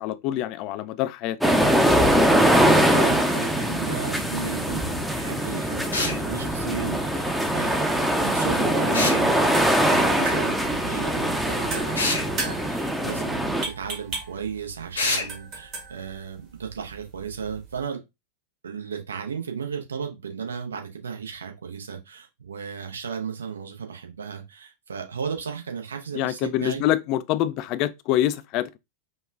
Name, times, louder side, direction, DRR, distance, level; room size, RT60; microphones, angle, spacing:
voice 1, 0.0-1.4 26.1-28.8, left 13 dB, 40° left, 0.3 m, -25 dB
sound 1, 1.4-13.7, right 1 dB, ahead, 0.6 m, -22 dB
voice 2, 2.6-18.0 18.6-26.8, right 6 dB, 70° right, 0.8 m, -35 dB
sound 2, 5.9-6.2 8.9-9.2 11.9-12.2 14.9-15.3, left 3 dB, 75° left, 1.0 m, -25 dB
sound 3, 9.5-17.9, right 3 dB, 35° right, 1.3 m, -38 dB
5.2 x 2.3 x 2.3 m
figure-of-eight pair, 90°, 0 cm